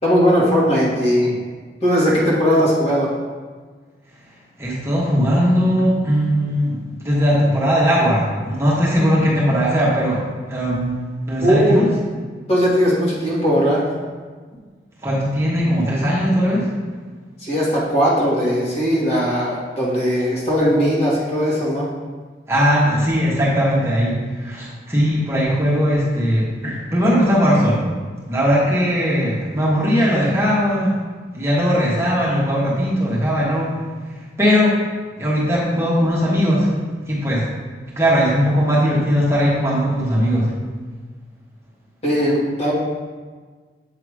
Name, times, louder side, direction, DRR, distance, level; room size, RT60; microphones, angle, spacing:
voice 1, 0.0-1.4 1.8-3.1 11.4-11.8 12.5-13.8 17.4-21.9 42.0-42.7, equal, 35° left, -6 dB, 1.5 m, -18 dB
voice 2, 4.6-10.2 10.5-11.9 15.0-16.7 22.5-27.8 28.3-30.9 31.3-33.7 34.1-34.8 35.2-36.7 37.1-37.4 38.0-40.5, equal, 15° right, -7 dB, 1.1 m, -19 dB
7.3 x 2.8 x 4.7 m, 1.5 s
head